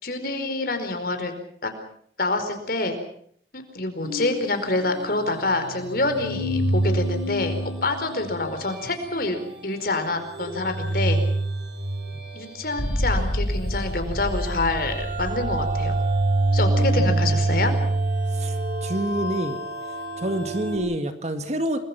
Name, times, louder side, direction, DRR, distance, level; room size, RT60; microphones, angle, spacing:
voice 1, 0.0-1.3 1.6-1.7 2.2-3.0 3.5-11.2 12.3-16.0 16.5-17.7, left 2 dB, 55° left, 7 dB, 4.8 m, -27 dB
sound 1, 4.0-13.1 13.4-20.8, right 2 dB, 80° right, 7.4 m, -27 dB
sound 2, 12.8-18.0, equal, 75° left, 3.8 m, -29 dB
voice 2, 17.0-17.4 18.3-19.6 20.2-21.8, right 1 dB, 40° right, 8 dB, 2.2 m, -28 dB
29.0 x 21.5 x 6.0 m, 0.64 s
head